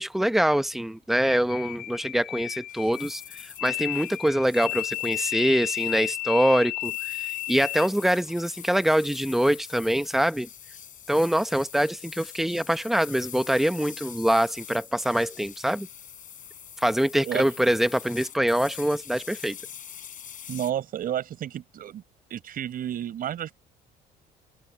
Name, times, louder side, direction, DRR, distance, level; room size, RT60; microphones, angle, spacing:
voice 1, 0.0-10.5 11.1-15.9 16.8-19.6, right 1 dB, ahead, 1.1 m, -24 dB
sound 1, 1.2-7.9, left 19 dB, 70° left, 3.1 m, -33 dB
sound 2, 2.7-20.7, left 9 dB, 50° left, 7.6 m, -44 dB
voice 2, 20.5-22.0 22.3-23.5, right 10 dB, 60° right, 6.0 m, -31 dB
open air
cardioid pair, 110°, 17 cm